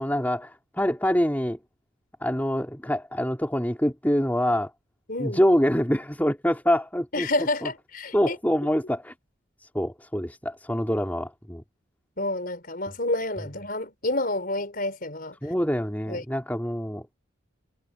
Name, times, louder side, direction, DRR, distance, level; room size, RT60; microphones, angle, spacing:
voice 1, 0.0-1.6 2.2-4.7 5.2-7.3 7.6-7.7 8.1-9.1 9.6-11.6 15.4-17.1, equal, 10° left, 3.9 m, -25 dB
voice 2, 7.1-8.4 12.2-15.3 16.1-16.2, left 2 dB, 50° left, 4.7 m, -29 dB
head